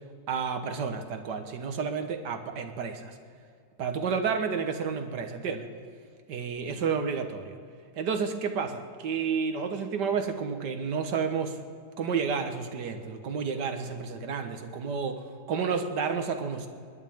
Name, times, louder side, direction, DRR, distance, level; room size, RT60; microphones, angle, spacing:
voice 1, 0.3-3.2 3.8-5.7 6.3-7.6 8.0-11.6 12.0-16.7, right 6 dB, 75° right, 6 dB, 1.8 m, -31 dB
30.0 x 11.0 x 3.6 m, 2.3 s
omnidirectional pair, 1.9 m